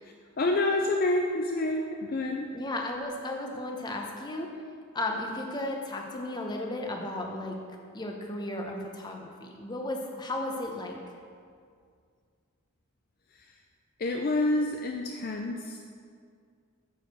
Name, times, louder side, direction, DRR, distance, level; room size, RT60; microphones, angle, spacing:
voice 1, 0.4-2.5 13.3-13.6 14.0-15.8, left 2 dB, 40° left, 2 dB, 0.4 m, -28 dB
voice 2, 2.5-4.5 4.9-7.6 7.9-11.0, left 1 dB, 20° left, 1 dB, 0.8 m, -34 dB
9.1 x 4.9 x 6.6 m, 2.2 s
head